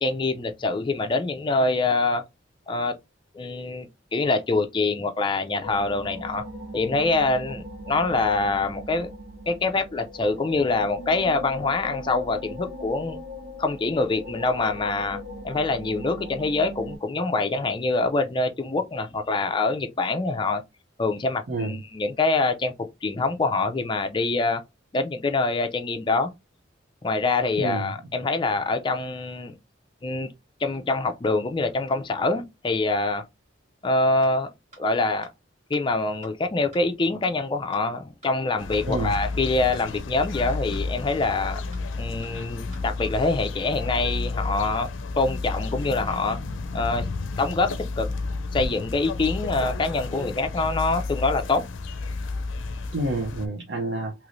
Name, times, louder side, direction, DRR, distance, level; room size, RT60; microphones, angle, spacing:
voice 1, 0.0-2.2 2.7-2.9 3.3-6.4 6.7-9.1 9.5-13.2 13.6-20.6 21.0-22.7 23.0-24.6 24.9-26.3 27.0-29.6 30.0-30.3 30.6-33.2 33.8-34.5 34.8-35.3 35.7-41.6 42.0-44.9 45.2-46.4 46.7-47.0 47.4-48.1 48.5-51.7, left 3 dB, 25° left, 0.4 m, -25 dB
Sirens of Amygdala, 5.6-17.0, left 1 dB, 5° right, 1.2 m, -38 dB
voice 2, 21.5-21.8 27.6-27.9 38.8-39.1 52.9-54.1, right 2 dB, 65° right, 0.7 m, -28 dB
sound 1, 34.2-34.3 34.7-34.8 35.2-35.3 35.7-35.8 36.2-36.3 36.7-36.8 37.2-37.3 37.7-37.8 38.2-38.3 38.7-38.8 39.2-39.3 39.7-39.8 40.2-40.3 40.7-40.8 41.2-41.3 41.7-41.8 42.2-42.3 42.7-42.8 43.2-43.3, right 1 dB, 40° right, 1.7 m, -49 dB
sound 2, 38.6-53.5, left 3 dB, 85° left, 0.4 m, -31 dB
3.1 x 3.0 x 2.5 m
head